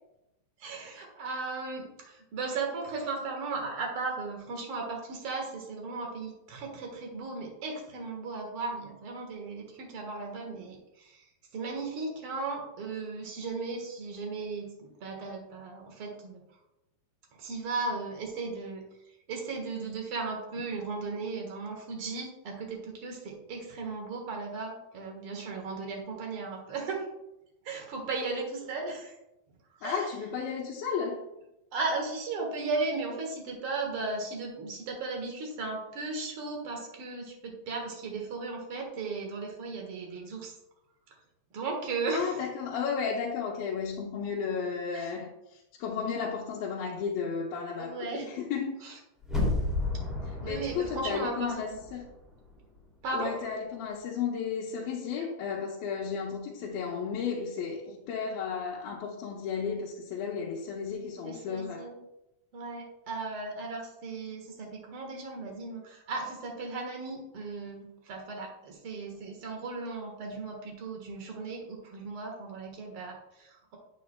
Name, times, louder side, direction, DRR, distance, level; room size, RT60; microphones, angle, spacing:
voice 1, 0.6-11.2 11.5-16.4 17.4-18.8 19.3-27.0 27.6-29.2 29.8-30.0 31.7-40.5 41.5-42.4 44.9-45.1 47.8-48.3 48.8-48.9 50.4-51.5 53.0-53.3 61.2-62.0 62.5-73.8, right 3 dB, 55° right, 1 dB, 1.7 m, -36 dB
voice 2, 29.8-31.2 42.1-48.9 50.3-52.1 53.1-61.9, left 6 dB, 85° left, -3 dB, 2.7 m, -33 dB
sound 1, 49.2-52.2 52.5-52.6, left 2 dB, ahead, 1.5 m, -32 dB
8.7 x 8.5 x 2.2 m, 0.90 s
omnidirectional pair, 4.1 m